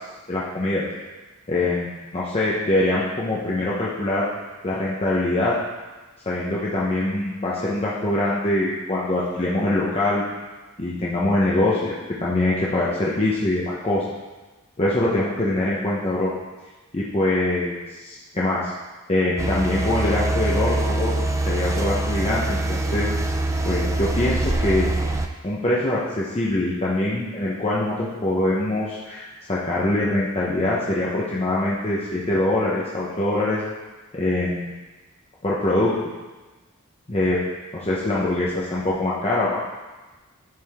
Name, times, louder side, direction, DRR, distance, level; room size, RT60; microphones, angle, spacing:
voice 1, 0.3-0.9 1.5-4.3 4.6-5.5 6.3-10.2 10.8-14.1 14.8-16.3 16.9-18.7 19.1-21.1 21.5-23.1 23.6-24.9 25.4-33.6 34.1-34.7 35.4-35.9 37.1-37.4 37.7-39.6, left 1 dB, 30° left, -6 dB, 1.0 m, -23 dB
sound 1, 19.4-25.3, right 2 dB, 15° right, 0.4 m, -24 dB
11.0 x 5.1 x 3.6 m, 1.2 s
head